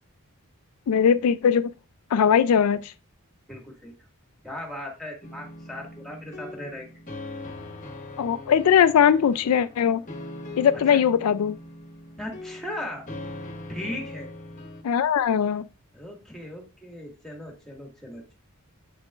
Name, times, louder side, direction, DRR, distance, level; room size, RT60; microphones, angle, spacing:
voice 1, 0.9-1.7 2.1-2.9 8.2-10.0 10.6-11.6 14.8-15.6, left 7 dB, 85° left, 0.4 m, -20 dB
voice 2, 3.5-3.9 4.4-6.9 10.9-11.0 12.2-13.0 13.7-14.3 15.9-18.3, left 1 dB, ahead, 1.7 m, -37 dB
sound 1, 5.2-14.8, left 2 dB, 35° left, 1.0 m, -41 dB
7.8 x 6.7 x 2.4 m
head